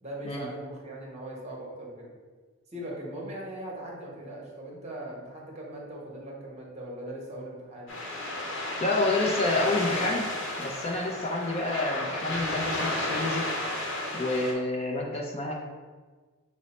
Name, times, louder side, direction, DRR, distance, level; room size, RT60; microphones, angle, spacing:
voice 1, 0.0-2.1 2.7-8.0, right 1 dB, 30° right, -3 dB, 1.0 m, -40 dB
sound 1, 7.9-14.5, left 1 dB, 60° left, 0.8 m, -32 dB
voice 2, 8.8-10.3 10.6-13.5 14.1-15.5, left 2 dB, 30° left, -1 dB, 0.4 m, -28 dB
6.0 x 2.0 x 4.1 m, 1.4 s
head